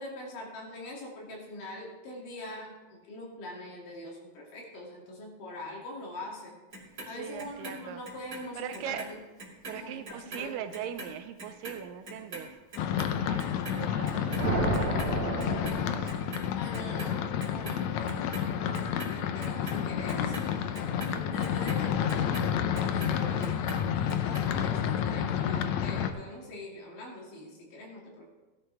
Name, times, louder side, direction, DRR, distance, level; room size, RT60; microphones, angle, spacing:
voice 1, 0.0-2.7 3.0-6.5 7.1-9.2 9.8-10.5 16.6-28.4, left 1 dB, 70° left, -2 dB, 4.1 m, -43 dB
Clock, 6.7-9.1 9.4-17.1 17.4-18.4 18.7-23.2 23.4-24.4 24.8-24.9, right 2 dB, 30° right, 2.7 m, -43 dB
voice 2, 7.2-8.0 8.6-9.0 9.7-12.5 13.3-13.5 13.7-15.6, right 10 dB, 80° right, 9 dB, 2.1 m, -40 dB
sound 1, 12.8-26.1, left 9 dB, 85° left, 1.6 m, -30 dB
sound 2, 14.0-16.6, right 4 dB, 60° right, 2.1 m, -32 dB
16.5 x 11.5 x 3.4 m, 1.2 s
omnidirectional pair, 4.1 m